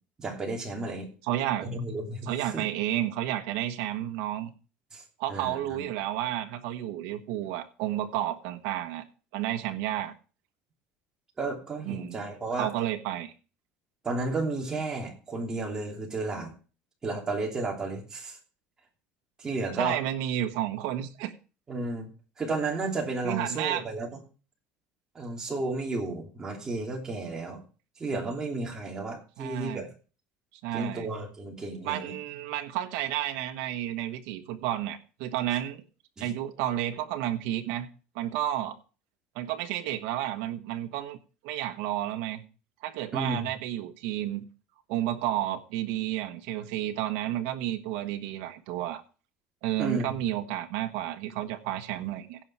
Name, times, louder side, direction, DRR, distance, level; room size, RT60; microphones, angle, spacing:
voice 1, 0.2-1.1 1.6-2.3 2.5-2.7 4.9-5.0 5.3-5.8 11.4-12.7 14.0-16.5 17.0-18.4 19.4-20.0 21.7-22.1 22.4-24.1 25.1-27.6 28.0-29.9 30.7-32.1 36.2-36.3 43.1-43.5 49.8-50.1, right 3 dB, 20° right, 2.8 m, -32 dB
voice 2, 1.2-1.6 2.3-4.5 5.2-9.0 9.3-10.1 11.8-12.2 12.5-13.3 19.8-21.3 23.2-23.9 29.4-29.9 30.6-31.1 31.8-35.8 36.2-37.9 38.1-38.8 39.3-41.2 41.4-42.4 42.8-44.4 44.9-49.0 49.6-52.4, right 13 dB, 75° right, 1.3 m, -31 dB
16.5 x 5.6 x 4.7 m
cardioid pair, 150°, 4 cm